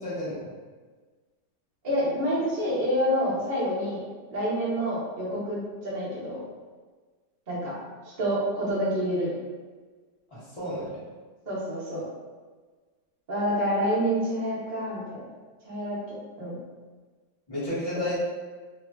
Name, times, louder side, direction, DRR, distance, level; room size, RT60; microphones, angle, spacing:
voice 1, 0.0-0.5 10.3-11.0 17.5-18.2, left 1 dB, 25° left, -10 dB, 0.8 m, -32 dB
voice 2, 1.8-4.1 4.3-6.4 7.5-7.8 8.2-9.4 11.5-12.0 13.3-15.2 15.6-16.6 17.9-18.0, equal, 40° right, -9 dB, 0.6 m, -28 dB
3.1 x 2.3 x 2.3 m, 1.4 s
omnidirectional pair, 2.0 m